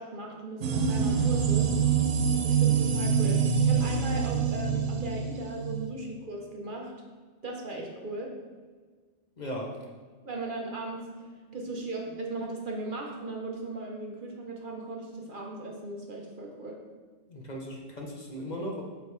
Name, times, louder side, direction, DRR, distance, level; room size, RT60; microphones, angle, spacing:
voice 1, 0.0-1.8 2.3-6.9 7.4-8.4 10.2-16.8, right 2 dB, 50° right, 0 dB, 1.0 m, -37 dB
sound 1, 0.6-5.9, right 6 dB, 85° right, 1.0 m, -25 dB
voice 2, 9.4-9.7 17.3-18.8, equal, 40° left, -1 dB, 0.9 m, -37 dB
8.3 x 5.1 x 3.2 m, 1.5 s
omnidirectional pair, 1.2 m